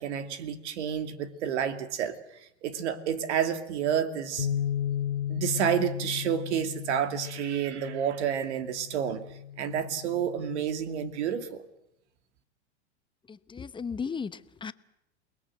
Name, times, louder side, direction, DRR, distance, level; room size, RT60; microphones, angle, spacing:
voice 1, 0.0-4.5 5.3-9.2 9.6-11.6, right 8 dB, 75° right, 10 dB, 2.6 m, -30 dB
sound 1, 4.4-10.6, left 10 dB, 85° left, 2.7 m, -35 dB
voice 2, 13.3-14.7, left 6 dB, 15° left, 14 dB, 0.9 m, -36 dB
28.5 x 20.5 x 7.8 m, 0.81 s
hypercardioid pair, 120°, 35 cm